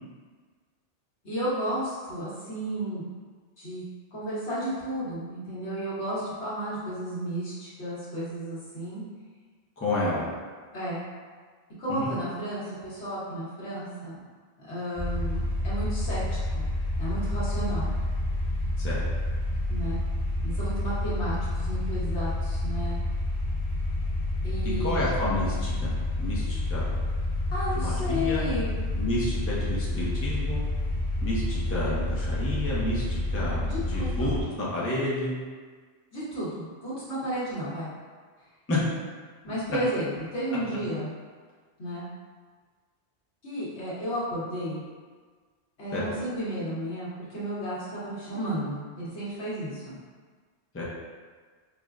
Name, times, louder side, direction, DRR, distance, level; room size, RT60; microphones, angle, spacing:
voice 1, 1.2-3.1 3.6-3.8 4.1-9.0 10.7-11.1 11.8-14.2 14.6-16.7 17.0-17.9 19.7-20.0 20.4-23.0 24.4-25.0 27.5-28.7 33.6-34.3 36.1-37.9 39.4-41.1 41.8-42.1 43.4-44.8 45.8-50.0, equal, 75° left, -9 dB, 1.4 m, -33 dB
voice 2, 9.8-10.2 11.9-12.1 18.8-19.0 24.8-26.9 27.7-28.4 28.9-30.6 31.2-33.6 33.9-35.3 38.7-38.8 45.9-46.1 50.7-50.8, left 1 dB, 15° left, -7 dB, 0.5 m, -30 dB
sound 1, 15.0-34.4, left 2 dB, 60° left, 1.0 m, -29 dB
4.8 x 2.1 x 2.4 m, 1.5 s
omnidirectional pair, 1.1 m